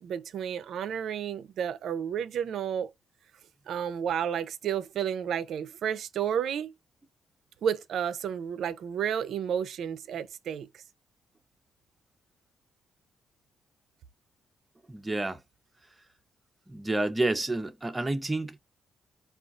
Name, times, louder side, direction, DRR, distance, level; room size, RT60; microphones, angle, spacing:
voice 1, 0.0-2.9 3.7-6.7 7.6-10.8, right 8 dB, 75° right, 0.4 m, -31 dB
voice 2, 14.9-15.4 16.7-18.6, right 2 dB, 15° right, 0.5 m, -29 dB
3.6 x 2.3 x 2.4 m
cardioid pair, 80°, 0 cm